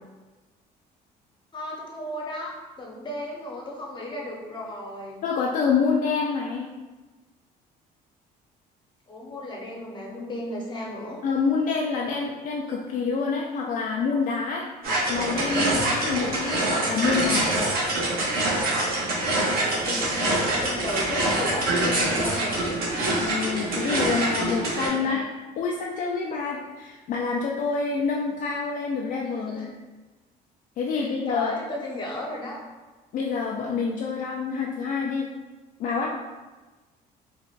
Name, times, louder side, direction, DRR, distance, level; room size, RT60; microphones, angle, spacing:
voice 1, 1.5-5.2 9.1-11.2 19.2-22.8 24.7-25.1 29.2-29.7 30.9-32.6, left 1 dB, 25° left, -2 dB, 0.9 m, -35 dB
voice 2, 5.2-6.7 11.2-14.7 15.1-17.5 23.2-25.3 25.6-29.7 30.8-31.5 33.1-35.3 35.8-36.2, left 5 dB, 55° left, -2 dB, 0.4 m, -27 dB
sound 1, 14.8-24.9, right 1 dB, 65° right, 1.1 m, -25 dB
4.4 x 2.4 x 2.4 m, 1.2 s
cardioid pair, 110°, 17 cm